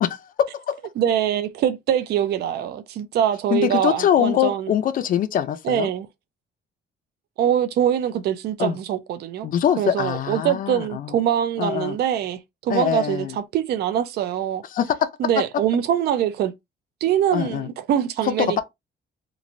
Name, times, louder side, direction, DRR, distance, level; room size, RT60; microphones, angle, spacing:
voice 1, 0.0-0.8 3.5-5.9 8.6-8.8 9.4-11.2 11.6-12.0 12.7-13.4 14.7-15.0 17.3-17.7 18.2-18.6, left 10 dB, 45° left, 0.4 m, -23 dB
voice 2, 1.0-4.7 5.6-6.1 7.4-9.5 9.8-14.6 15.2-16.5 17.0-18.6, right 10 dB, 55° right, 0.4 m, -23 dB
3.0 x 2.5 x 2.5 m
cardioid pair, 165°, 20 cm